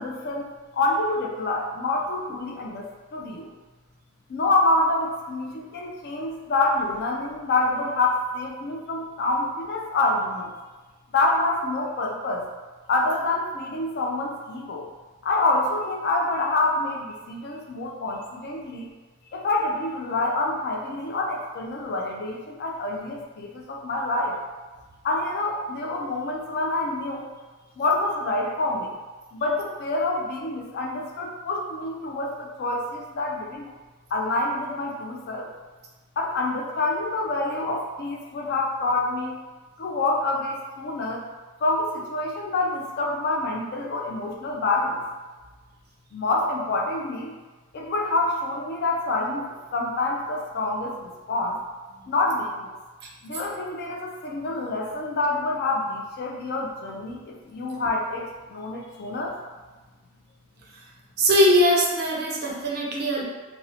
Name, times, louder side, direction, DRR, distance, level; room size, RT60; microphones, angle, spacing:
voice 1, 0.0-3.5 4.3-10.5 11.1-12.5 12.9-14.9 15.2-18.9 19.3-24.4 25.0-27.3 27.8-28.9 29.3-33.7 34.1-35.5 36.2-39.4 39.8-41.3 41.6-45.0 46.1-47.3 47.7-51.6 52.1-52.7 53.2-59.4, left 2 dB, 50° left, 0 dB, 0.4 m, -27 dB
voice 2, 61.2-63.2, equal, 50° right, -1 dB, 0.4 m, -20 dB
2.5 x 2.0 x 2.7 m, 1.3 s
head